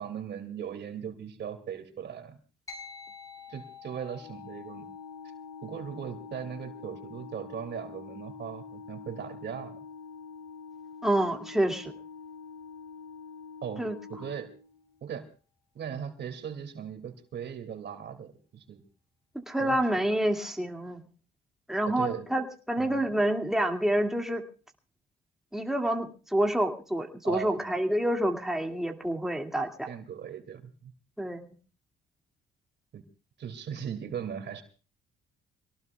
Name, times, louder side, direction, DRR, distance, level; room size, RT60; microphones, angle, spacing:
voice 1, 0.0-2.4 3.5-4.9 5.6-9.8 13.6-13.8 14.1-14.5 15.0-15.3 15.7-18.8 19.6-19.8 21.9-22.3 22.8-23.1 27.2-27.7 29.9-30.9 32.9-33.0 33.4-34.6, right 8 dB, 60° right, 7 dB, 2.5 m, -38 dB
sound 1, 2.7-12.4, left 6 dB, 15° left, 5.7 m, -51 dB
Organ, 4.2-15.0, left 5 dB, 60° left, 2.6 m, -46 dB
voice 2, 11.0-11.9 13.8-13.9 19.5-21.0 21.7-24.4 25.5-29.9 31.2-31.5, right 1 dB, ahead, 2 dB, 2.2 m, -28 dB
25.5 x 18.5 x 2.3 m, 0.37 s
cardioid pair, 90°, 20 cm